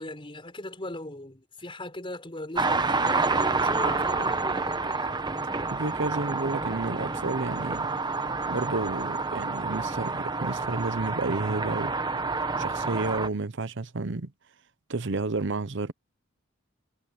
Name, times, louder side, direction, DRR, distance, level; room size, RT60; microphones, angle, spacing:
voice 1, 0.0-5.1, left 1 dB, 25° left, 4.8 m, -38 dB
sound 1, 2.6-13.3, right 3 dB, 20° right, 1.1 m, -28 dB
voice 2, 5.7-7.9 8.5-11.9 12.6-14.3 14.9-15.9, right 3 dB, 65° right, 0.8 m, -31 dB
head